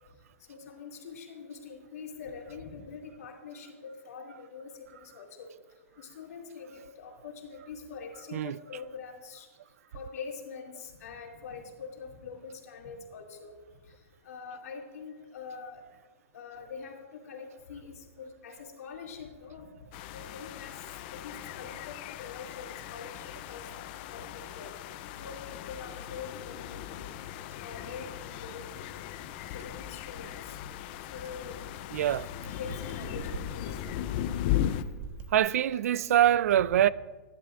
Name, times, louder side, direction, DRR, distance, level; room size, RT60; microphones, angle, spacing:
voice 1, 0.5-5.5 6.0-9.5 9.9-13.5 14.2-15.8 16.3-19.9 20.1-20.8 21.1-23.7 24.1-24.8 25.2-27.0 27.6-28.6 29.5-30.4 31.1-31.6 32.0-32.2 32.4-33.8 35.7-36.0, left 5 dB, 80° left, 2.7 m, -44 dB
sound 1, 19.9-34.8, left 12 dB, 40° left, 0.6 m, -37 dB
sound 2, 29.0-35.4, right 3 dB, 35° right, 1.3 m, -47 dB
voice 2, 31.9-32.3 35.3-36.9, right 11 dB, 70° right, 0.4 m, -24 dB
21.0 x 11.0 x 2.5 m
hypercardioid pair, 150°, 8 cm